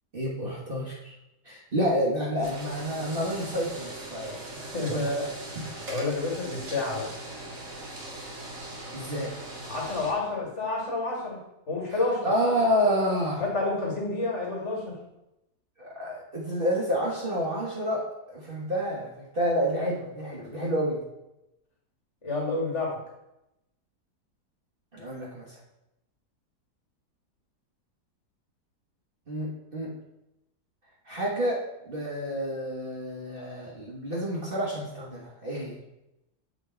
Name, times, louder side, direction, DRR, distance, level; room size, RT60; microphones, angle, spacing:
voice 1, 0.1-1.1 1.4-4.6 4.9-5.1 5.6-5.7 8.9-9.3 11.9-12.0 12.2-13.4 15.8-21.0 24.9-25.6 29.3-29.9 31.1-35.8, equal, 35° right, -4 dB, 1.3 m, -29 dB
sound 1, 2.4-10.1, right 1 dB, 55° right, 2.0 m, -40 dB
voice 2, 4.6-7.1 9.7-12.3 13.4-15.0 22.2-23.0, left 3 dB, 45° left, -2 dB, 2.1 m, -30 dB
7.7 x 3.8 x 4.4 m, 0.88 s
omnidirectional pair, 1.7 m